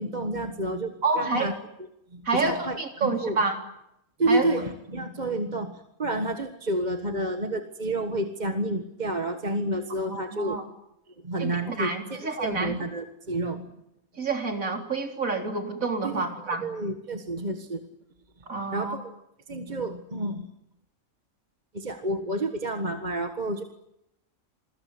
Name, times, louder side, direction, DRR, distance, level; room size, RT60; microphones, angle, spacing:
voice 1, 0.0-1.5 2.1-3.4 4.2-10.6 11.2-13.7 16.0-17.8 18.7-19.1 19.5-20.5 21.7-23.6, right 1 dB, 35° right, 7 dB, 1.7 m, -30 dB
voice 2, 1.0-1.5 2.2-3.6 4.3-4.5 10.1-10.6 11.4-12.7 14.2-16.6 18.5-19.0, right 3 dB, 80° right, 4 dB, 4.0 m, -28 dB
28.5 x 21.5 x 9.7 m, 0.82 s
omnidirectional pair, 1.4 m